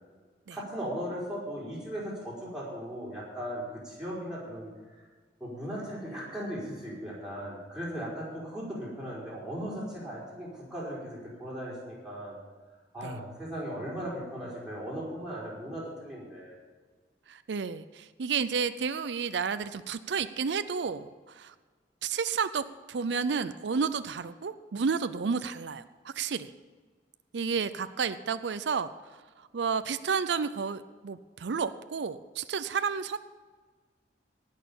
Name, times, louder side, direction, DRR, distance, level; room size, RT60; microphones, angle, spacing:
voice 1, 0.5-4.7 5.4-12.4 12.9-16.5, equal, 5° right, -7 dB, 5.0 m, -37 dB
voice 2, 17.3-21.5 22.0-26.5 27.3-28.9 29.5-33.2, right 5 dB, 85° right, 13 dB, 0.5 m, -31 dB
18.5 x 6.6 x 7.0 m, 1.4 s
head